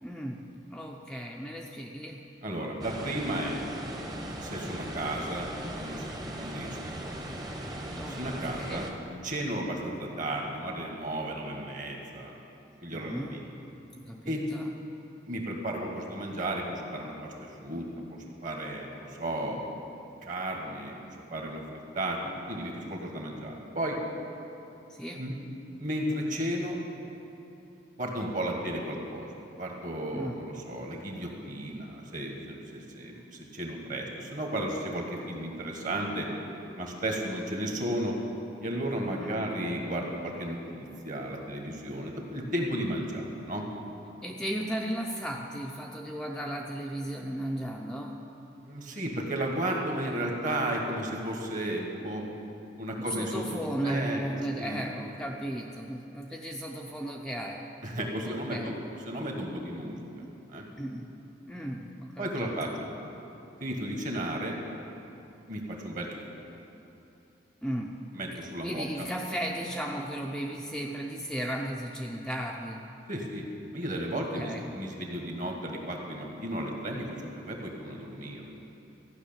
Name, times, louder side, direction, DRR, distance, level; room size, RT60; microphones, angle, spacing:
voice 1, 0.0-2.2 7.9-9.0 12.9-14.7 24.9-25.3 30.1-30.4 39.1-39.5 44.2-48.2 53.0-57.7 58.2-58.7 60.8-61.1 61.5-62.7 67.6-68.0 68.6-72.9 74.1-74.8, right 1 dB, 5° left, -1 dB, 0.5 m, -36 dB
voice 2, 2.4-3.5 4.4-5.5 5.8-7.1 8.0-8.8 9.2-12.4 12.8-13.4 14.2-14.5 15.3-17.9 18.2-19.7 20.2-24.0 25.2-25.3 25.8-26.8 28.0-29.3 29.6-33.2 33.5-36.3 36.7-38.1 38.6-43.6 48.6-52.3 52.8-53.4 53.8-54.3 54.6-54.8 57.8-58.7 59.0-60.2 60.5-60.7 62.2-62.9 63.6-64.5 65.5-66.2 68.1-68.8 73.1-73.5 73.7-78.4, right 1 dB, 45° right, 1 dB, 1.6 m, -34 dB
sound 1, 2.8-8.9, right 1 dB, 20° right, 1.0 m, -38 dB
14.0 x 6.0 x 8.9 m, 2.8 s
head